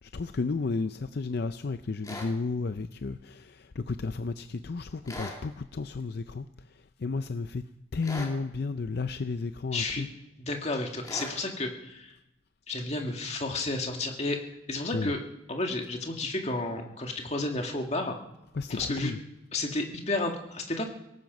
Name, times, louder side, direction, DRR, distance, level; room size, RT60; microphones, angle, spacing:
voice 1, 0.0-7.6 7.9-10.1 14.9-15.1 18.5-19.2, left 4 dB, 50° left, 0.5 m, -33 dB
sound 1, 2.0-2.3 5.1-5.4 8.0-8.4 11.0-11.4, left 1 dB, 20° left, 2.5 m, -38 dB
voice 2, 9.7-10.1 10.4-12.1 12.7-14.4 14.7-15.2 15.5-18.1 18.7-19.1 19.5-20.9, left 2 dB, 35° left, 2.1 m, -31 dB
18.0 x 15.5 x 5.3 m
head